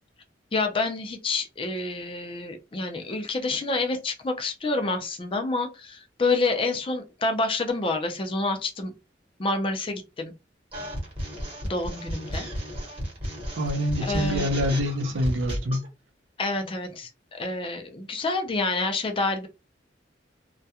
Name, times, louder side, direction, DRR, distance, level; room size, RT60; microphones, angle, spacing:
voice 1, 0.5-8.9 9.4-10.3 11.6-12.5 14.0-14.5 16.4-19.5, left 3 dB, 30° left, 0.4 m, -28 dB
sound 1, 10.7-15.9, equal, 30° right, 1.0 m, -33 dB
voice 2, 13.6-15.8, equal, 85° right, 0.6 m, -26 dB
2.3 x 2.2 x 2.7 m
head